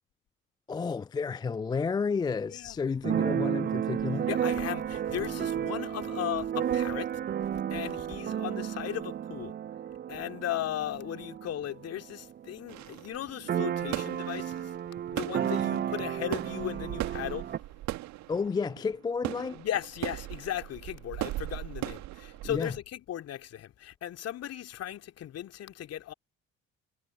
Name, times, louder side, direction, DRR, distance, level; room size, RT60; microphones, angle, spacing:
voice 1, 0.7-4.3 18.3-19.6 22.4-22.7, left 5 dB, 10° left, 0.4 m, -31 dB
Keyboard (musical), 3.0-12.6 12.9-13.0 13.2-17.6, right 10 dB, 30° right, 0.7 m, -32 dB
voice 2, 4.1-7.1 7.5-9.5 10.1-14.7 15.1-17.6 19.5-26.1, left 11 dB, 45° left, 2.9 m, -37 dB
sound 1, 12.7-22.8, right 16 dB, 50° right, 2.2 m, -39 dB
figure-of-eight pair, 55°, 35 cm